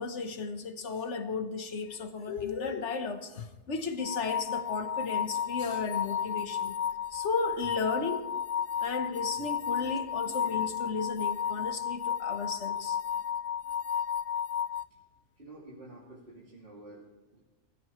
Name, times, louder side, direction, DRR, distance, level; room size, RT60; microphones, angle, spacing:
voice 1, 0.0-6.8 7.1-8.3 8.8-13.0, left 4 dB, 70° left, 1.5 m, -34 dB
sound 1, 4.0-14.8, left 8 dB, 50° left, 0.4 m, -33 dB
voice 2, 15.3-17.4, right 2 dB, 45° right, 3.0 m, -49 dB
23.5 x 15.5 x 3.3 m
omnidirectional pair, 1.2 m